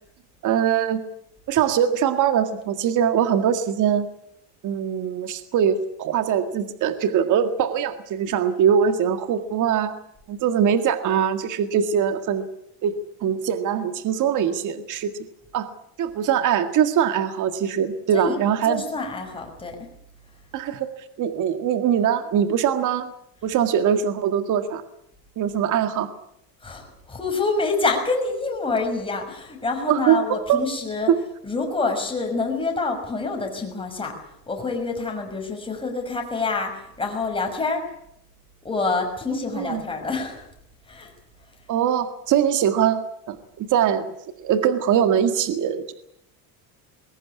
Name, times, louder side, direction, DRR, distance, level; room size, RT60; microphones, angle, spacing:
voice 1, 0.4-1.0 1.5-4.1 4.6-9.9 10.3-12.5 12.8-13.0 13.2-15.1 15.5-15.7 16.0-18.8 20.5-20.9 21.2-23.1 23.4-24.8 25.4-26.1 29.9-30.6 31.1-31.2 39.5-39.8 41.7-43.0 43.3-44.1 44.4-45.9, right 8 dB, 45° right, 9 dB, 1.9 m, -22 dB
voice 2, 18.6-19.8 26.6-31.1 31.4-34.1 34.5-37.8 38.6-40.5 40.9-41.1, left 3 dB, 10° left, 2 dB, 5.9 m, -27 dB
21.5 x 17.5 x 9.7 m, 0.75 s
cardioid pair, 140°, 44 cm